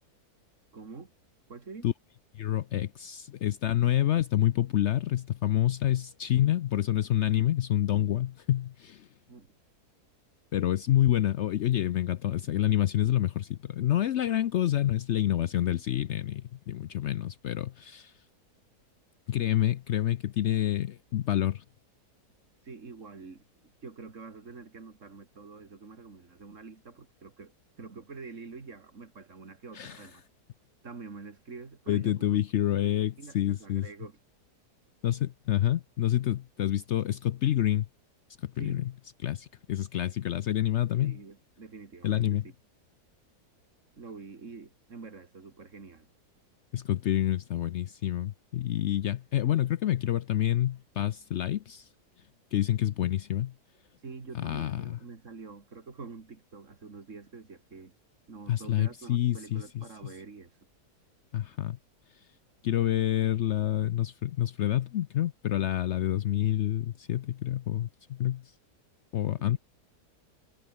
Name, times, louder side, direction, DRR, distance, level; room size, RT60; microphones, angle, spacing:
voice 1, 0.7-1.1 1.5-1.9 9.3-9.5 10.9-11.0 22.6-27.5 27.8-30.2 30.8-32.4 32.8-34.2 38.6-38.9 41.0-42.5 44.0-46.1 54.0-57.9 58.3-60.5 69.4-69.6, right 4 dB, 50° right, 2.8 m, -46 dB
voice 2, 2.3-9.1 10.5-18.1 19.3-21.6 29.7-30.0 31.9-33.9 35.0-37.9 38.4-38.9 39.2-41.2 42.0-42.4 46.7-51.9 52.5-53.5 54.4-54.9 58.5-59.8 61.3-61.8 62.6-68.4 69.1-69.6, left 12 dB, 70° left, 0.6 m, -28 dB
omnidirectional pair, 1.7 m